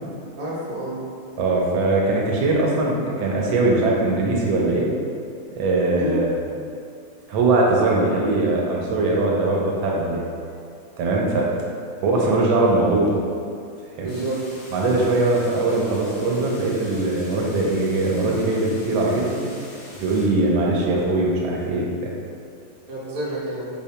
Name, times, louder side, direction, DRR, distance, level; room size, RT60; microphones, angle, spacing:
voice 1, 0.4-1.0 6.0-6.3 14.0-14.4 22.9-23.7, right 1 dB, 60° right, -6 dB, 1.0 m, -29 dB
voice 2, 1.4-4.9 5.5-6.3 7.3-10.3 11.0-11.5 12.0-13.1 14.0-14.1 14.7-19.4 20.0-22.1, right 2 dB, 80° right, -2 dB, 1.3 m, -21 dB
sound 1, 14.1-20.3, left 1 dB, 75° left, 1.5 m, -44 dB
5.0 x 2.1 x 2.7 m, 2.4 s
omnidirectional pair, 2.1 m